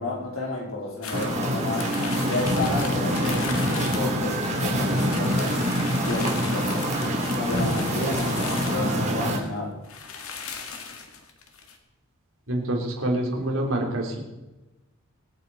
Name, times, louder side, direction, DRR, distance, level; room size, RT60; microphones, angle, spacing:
voice 1, 0.0-5.6 6.0-6.9 7.3-9.8, left 2 dB, 70° left, -1 dB, 4.2 m, -32 dB
sound 1, 1.0-9.2 9.6-9.7 9.8-11.8, left 5 dB, 85° left, 2.0 m, -38 dB
sound 2, 1.1-9.4, equal, 35° right, 3.5 m, -25 dB
voice 2, 12.5-14.2, right 1 dB, 65° right, 0 dB, 3.7 m, -26 dB
25.0 x 9.1 x 4.3 m, 1.0 s
head